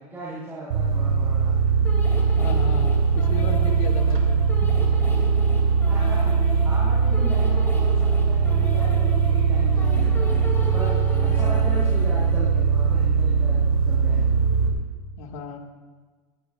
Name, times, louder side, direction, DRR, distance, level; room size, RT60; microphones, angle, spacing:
voice 1, 0.0-1.5 5.9-10.1 10.7-14.4, right 1 dB, 15° right, -9 dB, 4.5 m, -37 dB
sound 1, 0.7-14.7, right 5 dB, 80° right, 2.9 m, -20 dB
sound 2, 1.8-12.4, left 1 dB, 15° left, 2.6 m, -37 dB
voice 2, 2.1-4.4 11.2-11.7 15.2-15.6, left 5 dB, 70° left, 3 dB, 1.9 m, -35 dB
19.5 x 18.5 x 2.4 m, 1.4 s
supercardioid pair, 160°, 18 cm